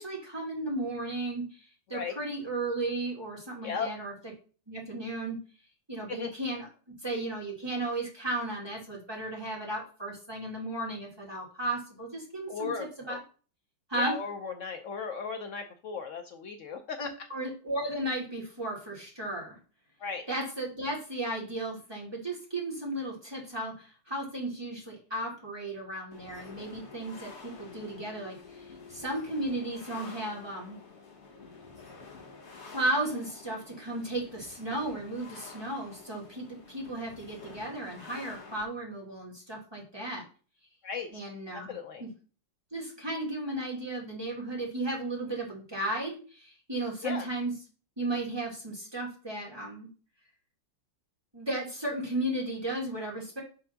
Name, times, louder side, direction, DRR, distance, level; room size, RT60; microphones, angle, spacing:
voice 1, 0.0-4.1 4.7-5.4 5.9-6.7 7.0-13.2 13.9-14.2 17.0-19.6 20.3-28.4 28.6-30.8 32.6-40.2 41.1-41.7 42.0-42.1 42.7-47.5 48.0-49.9 51.3-53.4, right 1 dB, 15° right, -4 dB, 2.0 m, -35 dB
voice 2, 3.6-3.9 6.1-6.3 12.5-13.2 13.9-17.3 20.0-20.2 40.8-41.1 41.5-42.0 47.0-47.3, left 5 dB, 85° left, 5 dB, 0.6 m, -36 dB
sound 1, 26.1-38.6, left 4 dB, 40° left, 1.6 m, -49 dB
6.0 x 3.4 x 5.7 m, 0.38 s
omnidirectional pair, 2.1 m